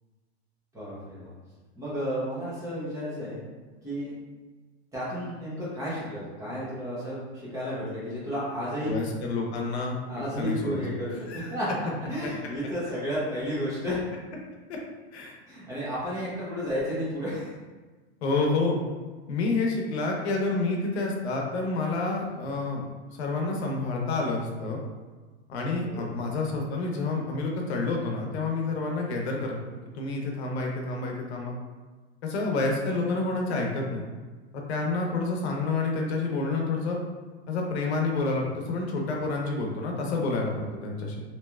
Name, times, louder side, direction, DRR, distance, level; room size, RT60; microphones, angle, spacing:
voice 1, 0.7-1.3 1.8-3.4 3.8-4.2 4.9-9.0 10.1-11.7 12.1-14.0 15.5-17.5 25.8-26.2, equal, 10° right, -9 dB, 0.7 m, -32 dB
voice 2, 8.9-9.9 10.4-10.8 11.3-11.5 12.2-12.3 14.7-14.8 15.1-15.3 18.2-18.8 19.3-22.8 23.1-24.8 25.5-29.6 29.9-31.5 32.2-34.0 34.5-37.0 37.5-41.2, left 3 dB, 80° left, 0 dB, 0.8 m, -28 dB
3.1 x 2.8 x 2.3 m, 1.3 s
supercardioid pair, 165°, 33 cm